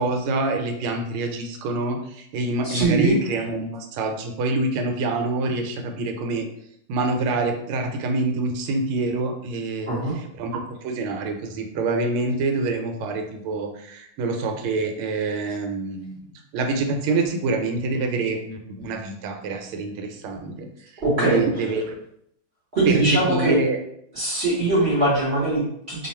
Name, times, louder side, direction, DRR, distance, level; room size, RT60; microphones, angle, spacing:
voice 1, 0.0-6.5 6.9-9.9 10.4-16.1 16.5-20.7 21.2-22.0 22.9-23.8, right 3 dB, 90° right, 4 dB, 1.4 m, -26 dB
voice 2, 2.6-3.1 9.9-10.1 21.0-21.4 22.7-23.6 24.1-26.1, right 2 dB, 45° right, -7 dB, 0.9 m, -21 dB
3.2 x 2.3 x 4.1 m, 0.73 s
omnidirectional pair, 2.3 m